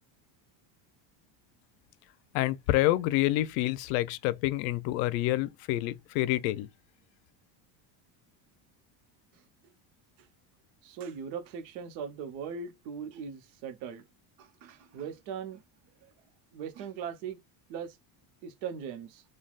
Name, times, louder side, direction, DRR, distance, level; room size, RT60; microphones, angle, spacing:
voice 1, 2.3-6.7, left 16 dB, 85° left, 0.6 m, -28 dB
voice 2, 10.8-14.0 14.4-15.6 16.5-17.4 17.7-18.0 18.4-19.2, right 7 dB, 85° right, 0.9 m, -39 dB
3.3 x 2.3 x 2.3 m
cardioid pair, 165°, 48 cm